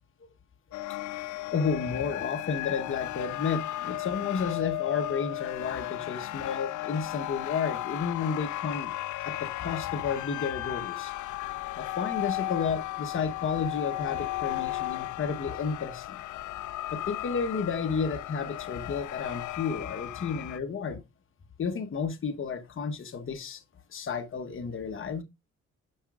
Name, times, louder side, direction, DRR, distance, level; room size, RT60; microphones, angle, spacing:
sound 1, 0.7-20.6, left 16 dB, 75° left, 0.5 m, -35 dB
voice 1, 1.5-8.9 9.2-11.1 11.8-16.2 16.9-21.0 21.6-23.6 23.9-25.2, left 5 dB, 40° left, 1.1 m, -32 dB
9.9 x 6.0 x 2.4 m
cardioid pair, 75°, 30 cm